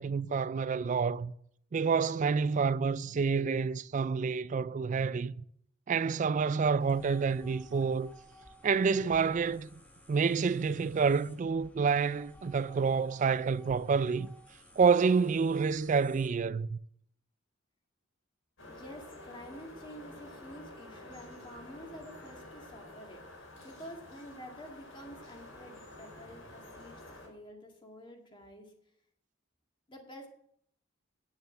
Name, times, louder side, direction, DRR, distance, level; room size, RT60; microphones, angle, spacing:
voice 1, 0.0-1.3 1.7-5.4 5.9-8.1 8.6-9.7 10.1-14.3 14.8-16.8, right 5 dB, 40° right, 0.3 m, -28 dB
sound 1, 6.8-16.4, equal, 10° left, 1.3 m, -56 dB
sound 2, 18.6-27.3, left 1 dB, 80° left, 4.7 m, -50 dB
voice 2, 18.7-28.7 29.9-30.3, equal, 25° left, 2.1 m, -49 dB
10.0 x 7.0 x 7.7 m
head